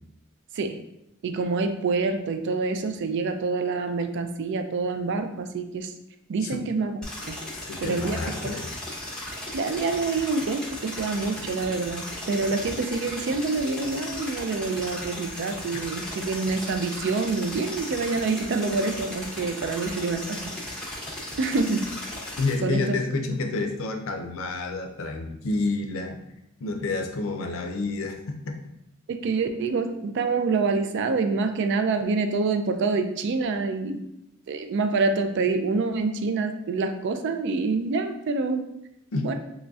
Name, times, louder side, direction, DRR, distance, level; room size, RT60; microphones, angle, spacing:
voice 1, 1.2-5.9 6.3-7.0 7.3-7.4 7.8-8.2 8.4-8.5 9.5-20.5 21.4-21.9 22.6-22.8 29.1-34.0 34.5-38.7 39.2-39.3, right 4 dB, 60° right, 7 dB, 0.3 m, -26 dB
sound 1, 7.0-22.5, left 1 dB, 5° left, 0.6 m, -36 dB
voice 2, 7.7-8.8 22.4-26.2 26.6-28.2 28.5-28.6 39.1-39.3, left 3 dB, 70° left, 4 dB, 0.5 m, -29 dB
3.8 x 3.1 x 2.3 m, 0.83 s
head